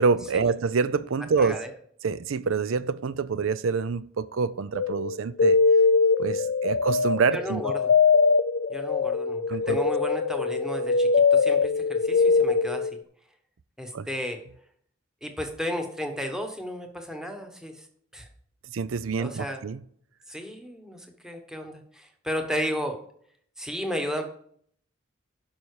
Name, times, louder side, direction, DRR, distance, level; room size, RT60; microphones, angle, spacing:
voice 1, 0.0-1.6 2.0-5.6 6.2-7.6 9.5-9.8 13.9-14.1 18.7-19.8, right 5 dB, 80° right, 0.5 m, -26 dB
voice 2, 1.4-1.7 7.3-7.9 8.7-12.9 13.8-14.4 15.2-17.8 18.1-18.3 19.2-19.6 20.3-23.0 23.6-24.2, equal, 5° right, 1.2 m, -33 dB
sound 1, 4.7-13.0, left 4 dB, 60° left, 0.4 m, -22 dB
11.5 x 5.6 x 4.8 m
head